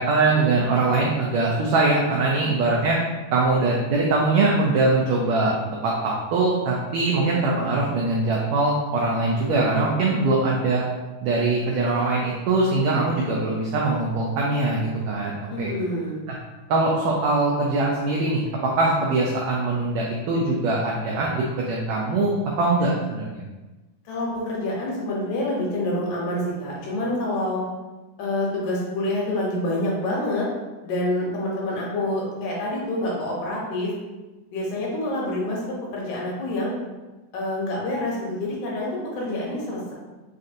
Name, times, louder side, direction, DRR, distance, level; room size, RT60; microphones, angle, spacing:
voice 1, 0.0-3.0 3.3-5.5 5.8-10.8 11.2-15.7 16.7-23.4, right 3 dB, 85° right, -3 dB, 1.5 m, -22 dB
voice 2, 15.5-16.2 24.1-27.6 28.2-30.5 30.8-33.9 34.5-36.7 37.3-39.9, left 1 dB, 75° left, -4 dB, 2.1 m, -27 dB
5.5 x 2.5 x 2.6 m, 1.2 s
omnidirectional pair, 3.7 m